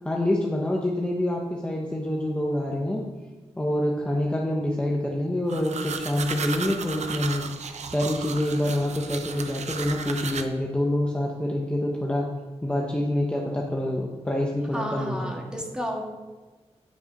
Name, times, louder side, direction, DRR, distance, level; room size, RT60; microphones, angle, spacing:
voice 1, 0.0-3.0 3.6-7.4 7.9-12.3 12.6-15.3, left 1 dB, 10° left, -2 dB, 0.9 m, -26 dB
sound 1, 5.5-10.4, right 5 dB, 85° right, 0.6 m, -34 dB
voice 2, 14.7-16.0, equal, 5° right, 0 dB, 1.6 m, -32 dB
10.0 x 5.7 x 5.3 m, 1.3 s
wide cardioid pair, 130°, 11 cm